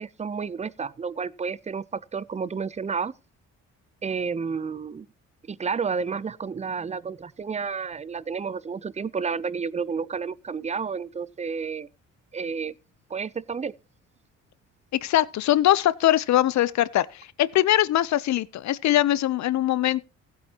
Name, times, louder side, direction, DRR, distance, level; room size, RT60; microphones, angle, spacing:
voice 1, 0.0-3.1 4.0-5.1 5.5-11.9 12.3-12.7 13.1-13.7, right 5 dB, 25° right, 0.6 m, -31 dB
voice 2, 15.0-20.1, left 13 dB, 65° left, 0.7 m, -22 dB
16.0 x 8.7 x 2.9 m
cardioid pair, 90°, 30 cm